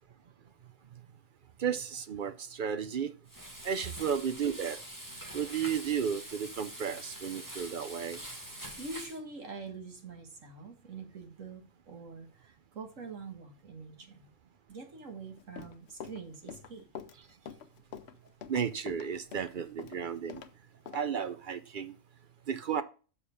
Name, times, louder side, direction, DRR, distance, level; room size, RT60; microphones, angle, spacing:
voice 1, 1.6-3.1 3.6-4.8 5.3-8.2 18.5-20.4 20.9-22.0 22.5-22.8, right 7 dB, 55° right, 0.6 m, -33 dB
Frying (food), 3.3-9.2, right 1 dB, 15° right, 1.5 m, -44 dB
voice 2, 8.8-14.3 14.7-16.9 18.2-18.3 20.7-20.8, right 4 dB, 70° right, 1.9 m, -45 dB
Run, 15.4-20.5 20.9-21.0, left 7 dB, 60° left, 0.9 m, -45 dB
6.7 x 4.9 x 4.9 m
omnidirectional pair, 1.4 m